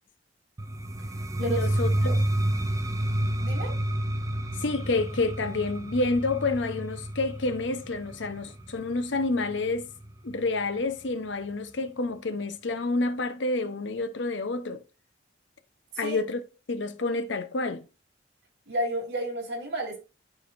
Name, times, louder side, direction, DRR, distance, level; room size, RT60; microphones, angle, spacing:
sound 1, 0.6-10.4, right 1 dB, 15° right, 0.5 m, -30 dB
voice 1, 1.4-2.1 4.6-9.9 10.2-14.8 16.0-16.4 16.7-17.9, left 3 dB, 65° left, 0.8 m, -29 dB
voice 2, 3.4-3.7 15.9-16.2 18.7-20.0, right 1 dB, 55° right, 3.1 m, -31 dB
12.0 x 4.1 x 2.5 m
head